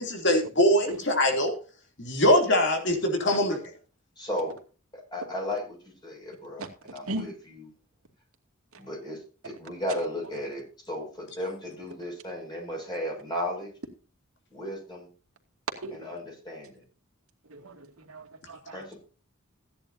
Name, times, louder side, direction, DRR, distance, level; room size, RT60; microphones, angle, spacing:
voice 1, 0.0-1.5 2.0-3.6, left 1 dB, 55° left, 3 dB, 3.0 m, -23 dB
voice 2, 4.2-4.5 5.1-5.8 6.0-7.7 8.8-9.2 9.4-13.7 14.5-15.1 15.9-16.8 18.7-19.0, left 1 dB, 20° left, 0 dB, 6.5 m, -35 dB
voice 3, 6.6-7.3 10.3-10.4 15.8-16.1 17.5-18.8, right 1 dB, 80° right, 3 dB, 2.5 m, -38 dB
16.0 x 10.5 x 2.8 m, 0.36 s
head